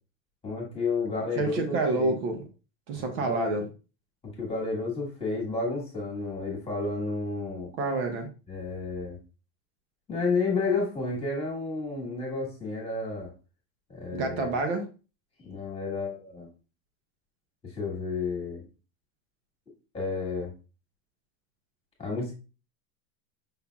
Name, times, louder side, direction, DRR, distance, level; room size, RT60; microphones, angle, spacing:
voice 1, 0.4-2.1 2.9-3.6 4.4-7.7 8.5-9.2 10.1-13.3 13.9-14.5 15.4-16.5 17.7-18.6 19.9-20.5 22.0-22.3, left 3 dB, 15° left, 1.5 m, -31 dB
voice 2, 1.4-2.5 2.9-3.7 7.8-8.3 14.1-14.9, right 2 dB, 55° right, 1.1 m, -28 dB
5.7 x 3.4 x 2.3 m
supercardioid pair, 145°, 43 cm